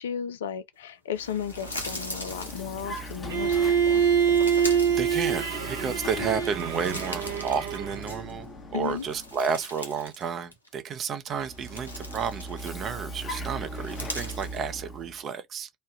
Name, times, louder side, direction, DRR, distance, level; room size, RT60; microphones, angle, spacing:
voice 1, 0.0-3.6 3.9-4.0 6.2-6.3 8.7-9.0, left 8 dB, 70° left, 0.4 m, -34 dB
sound 1, 1.1-3.2 3.9-5.9 6.3-8.4 8.8-10.3 10.5-10.7 11.3-13.0 13.7-14.6, left 1 dB, 90° left, 0.8 m, -40 dB
Vehicle, 1.1-9.6 11.3-15.2, right 1 dB, 25° left, 0.9 m, -39 dB
Bowed string instrument, 3.3-8.2, right 7 dB, 70° right, 0.8 m, -25 dB
voice 2, 5.0-15.7, right 6 dB, 35° right, 0.7 m, -31 dB
3.1 x 2.2 x 2.8 m
figure-of-eight pair, 75°, 0 cm